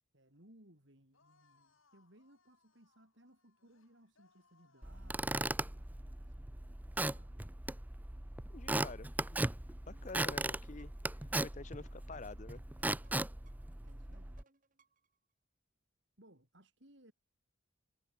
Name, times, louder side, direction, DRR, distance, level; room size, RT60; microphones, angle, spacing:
voice 1, 0.1-7.5 13.8-14.4 16.2-17.1, right 1 dB, 60° right, 6.5 m, -64 dB
sound 1, 1.1-6.0, left 4 dB, 75° left, 6.3 m, -73 dB
Squeak / Wood, 4.8-14.4, right 2 dB, 10° right, 0.5 m, -38 dB
voice 2, 8.5-9.6 9.9-10.9 11.4-12.6, left 3 dB, 35° left, 0.7 m, -48 dB
sound 2, 9.9-15.2, right 2 dB, 40° right, 4.8 m, -71 dB
head